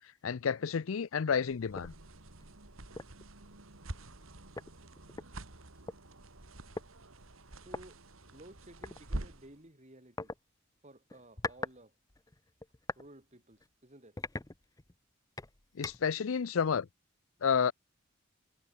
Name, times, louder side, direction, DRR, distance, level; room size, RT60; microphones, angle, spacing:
voice 1, 0.2-1.9 15.8-16.9 17.4-17.7, left 6 dB, 80° left, 0.5 m, -30 dB
sound 1, 1.5-9.6, right 1 dB, 90° right, 2.8 m, -46 dB
sound 2, 1.7-2.0 2.4-2.5 3.0-3.2 4.2-4.3 4.6-6.0 6.8-6.9 7.7-7.8 8.8-9.0 10.2-10.4 11.1-11.8 12.1-13.1 13.5-13.7 14.2-15.0 15.4-16.2, left 3 dB, 15° left, 0.8 m, -41 dB
voice 2, 7.6-8.0 8.3-10.3 10.8-11.9 13.0-14.2, right 1 dB, 35° right, 5.2 m, -55 dB
head